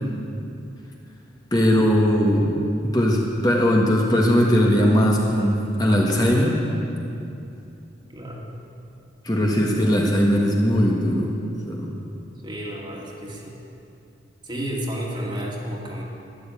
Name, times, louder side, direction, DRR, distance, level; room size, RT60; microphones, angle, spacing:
voice 1, 1.5-2.6 2.8-6.6 9.2-11.3 11.7-11.9, equal, 20° left, -2 dB, 1.5 m, -19 dB
voice 2, 8.1-8.5 12.4-13.6 14.4-16.0, equal, 25° right, -2 dB, 2.2 m, -31 dB
13.0 x 11.5 x 8.6 m, 2.7 s
head